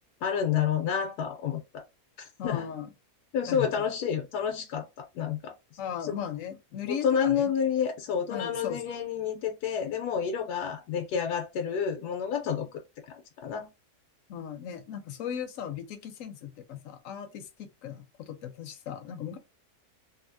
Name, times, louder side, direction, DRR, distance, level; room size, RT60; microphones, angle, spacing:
voice 1, 0.2-1.6 2.2-2.7 3.3-5.5 6.0-6.2 6.9-12.8 13.1-13.7, left 7 dB, 80° left, 1.1 m, -29 dB
voice 2, 2.4-2.9 3.5-3.9 5.8-7.5 8.3-8.8 14.3-19.4, left 8 dB, 65° left, 0.9 m, -37 dB
2.7 x 2.7 x 2.6 m
omnidirectional pair, 1.7 m